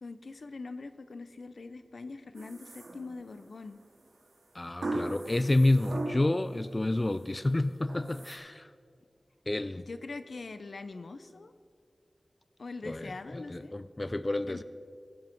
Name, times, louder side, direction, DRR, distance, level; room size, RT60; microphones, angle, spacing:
voice 1, 0.0-3.8 9.8-11.5 12.6-13.8 14.5-14.6, left 3 dB, 75° left, 11 dB, 0.7 m, -43 dB
sound 1, 2.4-3.4 4.8-6.5 6.9-7.4 7.9-8.4, right 2 dB, 85° right, 2.2 m, -38 dB
voice 2, 4.5-8.7 9.5-9.8 12.9-14.6, left 2 dB, 30° left, 13 dB, 0.4 m, -29 dB
21.5 x 7.5 x 4.6 m, 2.2 s
wide cardioid pair, 65°, 0 cm